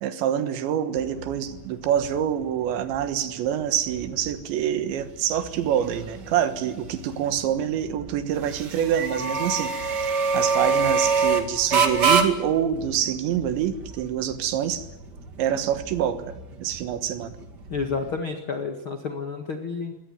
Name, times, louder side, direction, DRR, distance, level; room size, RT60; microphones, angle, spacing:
voice 1, 0.0-10.1 10.3-14.9 15.4-17.3, right 10 dB, 70° right, 11 dB, 3.6 m, -26 dB
sound 1, 0.9-18.1, right 4 dB, 50° right, 1.2 m, -28 dB
voice 2, 17.7-19.9, left 5 dB, 80° left, 7 dB, 1.1 m, -30 dB
22.5 x 18.0 x 9.6 m, 0.98 s
omnidirectional pair, 5.6 m